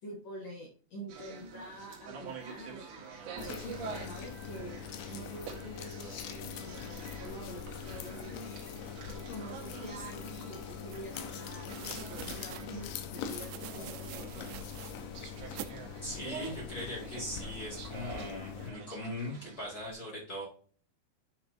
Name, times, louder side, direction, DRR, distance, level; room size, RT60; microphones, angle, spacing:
voice 1, 0.0-8.3 9.1-14.6, right 1 dB, 65° left, -1 dB, 1.7 m, -47 dB
sound 1, 1.1-19.9, right 6 dB, 55° right, 2.6 m, -47 dB
sound 2, 3.4-18.7, left 8 dB, 80° left, 2.7 m, -43 dB
sound 3, 10.9-11.0 11.7-12.7 13.2-15.0 15.6-15.7, right 14 dB, 85° right, 2.9 m, -46 dB
voice 2, 16.0-20.4, left 1 dB, 35° left, -4 dB, 1.6 m, -40 dB
10.5 x 5.8 x 2.7 m, 0.42 s
omnidirectional pair, 5.1 m